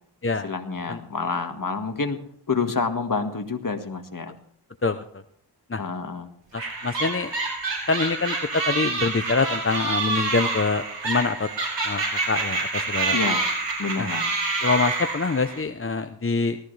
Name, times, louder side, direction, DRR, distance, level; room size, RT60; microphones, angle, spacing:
voice 1, 0.4-2.2 2.5-4.3 5.8-6.3 13.1-13.4 13.8-14.3, left 4 dB, 45° left, 7 dB, 1.8 m, -28 dB
voice 2, 4.8-5.2 5.7-5.8 6.5-7.3 7.9-11.5 11.8-13.2 14.0-14.1 14.6-16.6, left 4 dB, 30° left, 9 dB, 0.8 m, -25 dB
sound 1, 6.6-15.6, right 3 dB, 80° right, 5.6 m, -27 dB
19.0 x 13.5 x 3.3 m, 0.62 s
cardioid pair, 55°, 44 cm